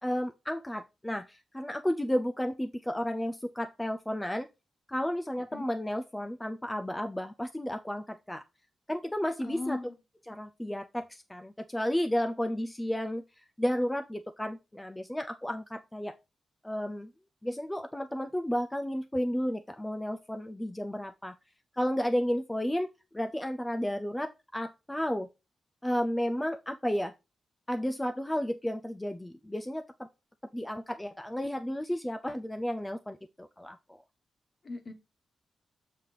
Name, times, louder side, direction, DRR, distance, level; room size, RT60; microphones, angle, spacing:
voice 1, 0.0-4.5 4.9-8.4 8.9-9.8 10.3-16.2 16.6-17.1 17.4-21.4 21.7-22.9 23.1-25.3 25.8-27.1 27.7-30.1 30.5-34.0, equal, 10° left, 0.4 m, -32 dB
voice 2, 9.4-9.9 34.6-34.9, left 2 dB, 40° left, 1.3 m, -37 dB
7.1 x 3.3 x 5.7 m
wide cardioid pair, 125°, 0 cm